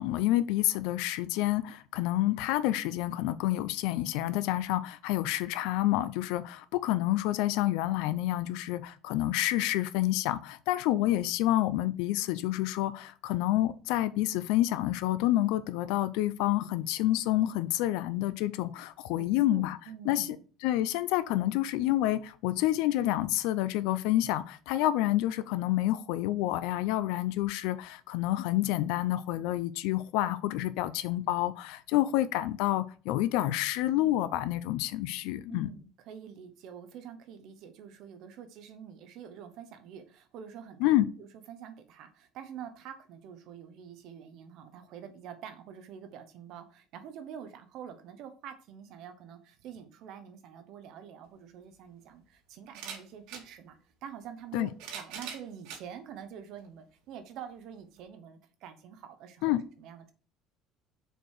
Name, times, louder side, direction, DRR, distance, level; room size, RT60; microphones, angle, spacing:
voice 1, 0.0-19.8 20.0-20.4 20.6-35.7 40.8-41.1 54.5-54.7 59.4-59.6, left 15 dB, 80° left, 0.5 m, -28 dB
voice 2, 19.1-20.4 35.5-60.1, right 8 dB, 55° right, 1.0 m, -47 dB
sound 1, 51.3-51.4 52.7-53.5 54.5-55.8 56.6-56.7 58.0-58.1, right 7 dB, 85° right, 2.1 m, -42 dB
6.6 x 4.6 x 4.7 m
cardioid pair, 175°, 0 cm